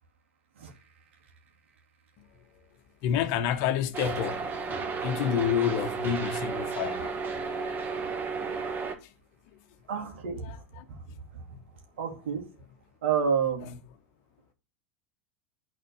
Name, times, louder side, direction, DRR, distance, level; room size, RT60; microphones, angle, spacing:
voice 1, 3.0-4.4 5.0-7.1 10.8-10.9, left 9 dB, 50° left, 1.1 m, -28 dB
sound 1, 3.9-8.9, right 5 dB, 30° right, 1.6 m, -33 dB
voice 2, 9.9-10.6 10.9-11.0 11.3-11.4 12.0-12.4 13.0-13.8, right 7 dB, 70° right, 2.3 m, -29 dB
9.2 x 4.3 x 6.3 m
hypercardioid pair, 90°, 7 cm